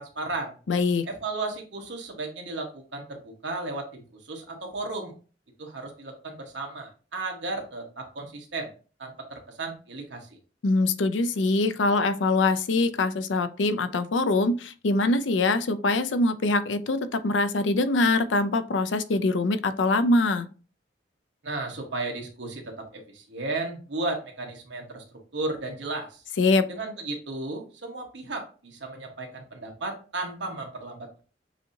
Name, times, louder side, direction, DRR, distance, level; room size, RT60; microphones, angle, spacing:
voice 1, 0.0-0.5 1.1-5.1 5.6-8.7 9.0-10.3 21.4-25.0 25.3-26.2 26.7-31.2, right 2 dB, 80° right, 1 dB, 1.3 m, -34 dB
voice 2, 0.7-1.1 10.6-20.5 26.4-26.7, left 2 dB, 85° left, 11 dB, 0.5 m, -23 dB
7.0 x 2.8 x 2.7 m, 0.37 s
head